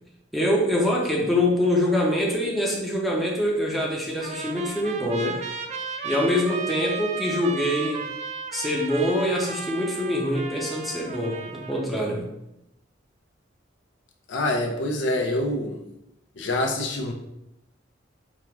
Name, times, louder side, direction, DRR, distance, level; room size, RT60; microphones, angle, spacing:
voice 1, 0.3-5.4 6.0-8.0 8.5-12.3, left 1 dB, ahead, -3 dB, 0.6 m, -24 dB
Trumpet, 4.2-11.9, right 4 dB, 35° right, 0.3 m, -34 dB
voice 2, 14.3-15.8 16.4-17.1, left 1 dB, 70° left, 2 dB, 0.5 m, -26 dB
4.8 x 2.4 x 2.9 m, 0.85 s
head